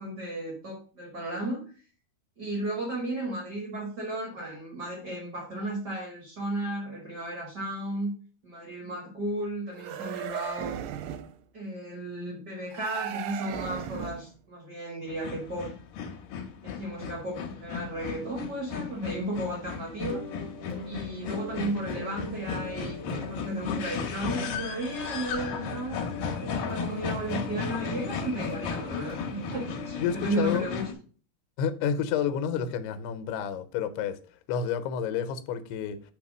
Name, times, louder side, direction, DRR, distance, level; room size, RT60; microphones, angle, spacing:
voice 1, 0.0-1.6 2.4-8.2 8.4-10.8 11.5-15.7 16.6-20.2 20.8-26.2 26.4-30.8, right 1 dB, 70° right, 0.9 m, -34 dB
sound 1, 9.7-11.4 12.7-14.3, right 11 dB, 90° right, 2.6 m, -36 dB
sound 2, 15.1-30.9, left 6 dB, 70° left, 2.4 m, -35 dB
sound 3, 20.0-30.6, left 1 dB, 10° right, 1.2 m, -41 dB
voice 2, 30.0-30.7 31.6-34.2 34.5-36.0, left 8 dB, 90° left, 2.7 m, -29 dB
6.0 x 3.6 x 6.0 m
omnidirectional pair, 4.6 m